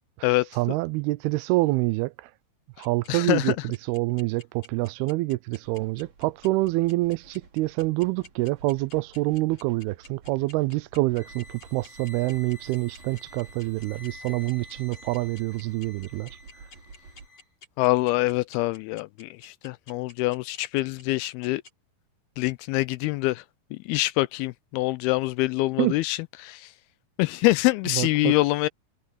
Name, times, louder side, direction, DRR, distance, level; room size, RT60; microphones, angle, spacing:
voice 1, 0.6-2.3 2.8-16.3 25.8-26.0 27.9-28.4, right 20 dB, 80° right, 2.5 m, -26 dB
sound 1, 2.8-21.7, left 4 dB, 40° left, 4.6 m, -49 dB
voice 2, 3.1-3.6 17.8-21.6 22.4-23.4 23.7-26.7 27.2-28.7, left 19 dB, 85° left, 2.3 m, -25 dB
sound 2, 5.6-17.3, right 4 dB, 45° right, 5.0 m, -52 dB
sound 3, 11.1-17.5, left 2 dB, 55° left, 6.4 m, -49 dB
omnidirectional pair, 4.7 m